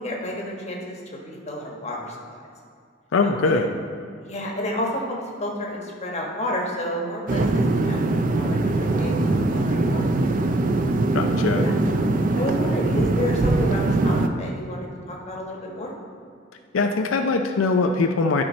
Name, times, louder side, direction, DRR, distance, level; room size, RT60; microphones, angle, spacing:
voice 1, 0.0-2.2 3.2-3.6 4.2-10.0 11.5-11.7 12.3-15.9, left 1 dB, 35° left, -1 dB, 1.2 m, -31 dB
voice 2, 3.1-3.7 11.1-11.6 16.7-18.4, left 3 dB, 90° left, 4 dB, 0.5 m, -21 dB
sound 1, 7.3-14.3, right 2 dB, 45° right, 0.4 m, -22 dB
12.0 x 4.5 x 4.3 m, 2.2 s
head